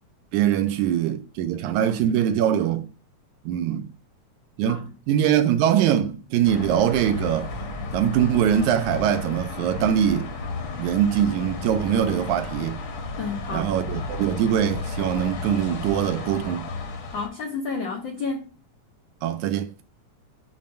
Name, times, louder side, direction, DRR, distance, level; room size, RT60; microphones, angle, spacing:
voice 1, 0.3-2.9 3.5-3.9 4.6-7.5 7.9-10.3 10.8-12.8 13.5-16.7 19.2-19.7, right 10 dB, 85° right, 2.0 m, -23 dB
sound 1, 6.5-17.3, left 3 dB, 60° left, 1.5 m, -33 dB
voice 2, 13.2-13.7 17.1-18.5, left 4 dB, 80° left, 1.0 m, -31 dB
7.2 x 2.6 x 5.6 m
omnidirectional pair, 3.4 m